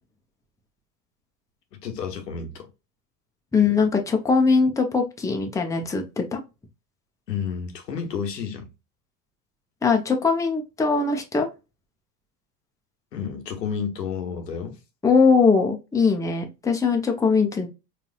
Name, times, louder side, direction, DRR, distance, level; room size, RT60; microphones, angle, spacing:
voice 1, 1.7-2.7 7.3-8.7 13.1-14.8, left 6 dB, 85° left, 0.9 m, -31 dB
voice 2, 3.5-6.4 9.8-11.5 15.0-17.7, left 4 dB, 5° left, 0.7 m, -21 dB
4.0 x 2.4 x 2.4 m
hypercardioid pair, 80°, 48 cm